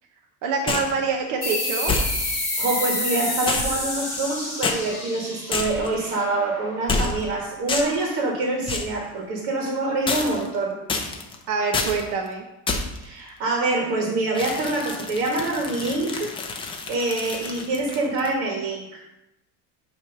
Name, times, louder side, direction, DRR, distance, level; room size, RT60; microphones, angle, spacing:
voice 1, 0.4-1.9 11.5-12.5, right 4 dB, 50° right, 1 dB, 0.8 m, -25 dB
sound 1, 0.7-1.0 1.9-2.4 3.5-4.3 4.6-4.8 5.5-5.9 6.9-7.3 7.7-8.1 8.7-9.0 10.1-10.5 10.9-11.3 11.7-12.0 12.7-13.0 14.3-18.3, left 4 dB, 15° left, 0.4 m, -28 dB
sound 2, 1.4-6.6, left 1 dB, 10° right, 2.4 m, -28 dB
voice 2, 2.6-10.8 13.0-16.3 16.9-19.1, right 2 dB, 90° right, 0 dB, 1.8 m, -25 dB
8.4 x 3.2 x 6.0 m, 0.93 s
cardioid pair, 175°, 40 cm